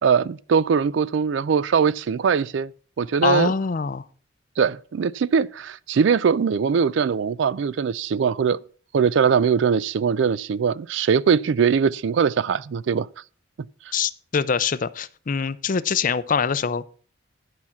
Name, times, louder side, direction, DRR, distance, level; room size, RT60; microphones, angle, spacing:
voice 1, 0.0-2.7 3.0-3.5 4.6-8.6 8.9-13.1, right 6 dB, 65° right, 0.4 m, -21 dB
voice 2, 3.2-4.0 13.9-16.9, left 6 dB, 40° left, 0.5 m, -24 dB
11.0 x 5.7 x 6.0 m
head